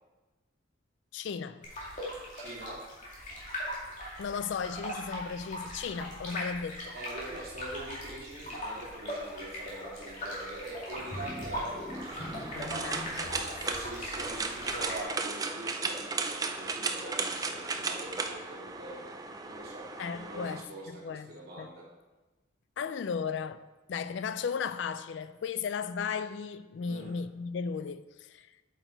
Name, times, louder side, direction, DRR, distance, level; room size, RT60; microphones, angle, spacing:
voice 1, 1.1-1.7 4.2-6.9 12.5-13.6 20.0-21.7 22.8-23.6 23.9-28.5, left 6 dB, 65° left, 0.3 m, -36 dB
sound 1, 1.6-15.0, equal, 40° left, 2.4 m, -40 dB
voice 2, 2.3-2.8 6.9-12.3 13.6-19.2 19.4-21.8 26.8-27.1, right 1 dB, 50° right, 2.9 m, -44 dB
sound 2, 11.0-13.4, left 1 dB, 85° left, 2.9 m, -42 dB
sound 3, 11.9-20.6, right 4 dB, 20° right, 0.4 m, -35 dB
7.9 x 6.1 x 4.6 m
head